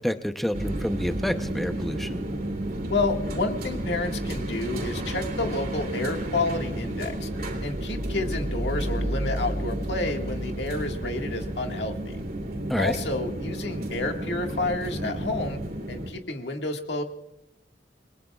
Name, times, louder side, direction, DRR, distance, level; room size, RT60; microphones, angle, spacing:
voice 1, 0.0-2.2 12.7-12.9, equal, ahead, 7 dB, 0.7 m, -28 dB
sound 1, 0.5-16.1, right 1 dB, 55° right, 2.9 m, -31 dB
voice 2, 2.9-7.3 7.6-12.2 12.8-15.6 15.9-17.0, left 3 dB, 75° left, 3 dB, 1.8 m, -30 dB
27.5 x 22.0 x 2.4 m, 0.86 s
head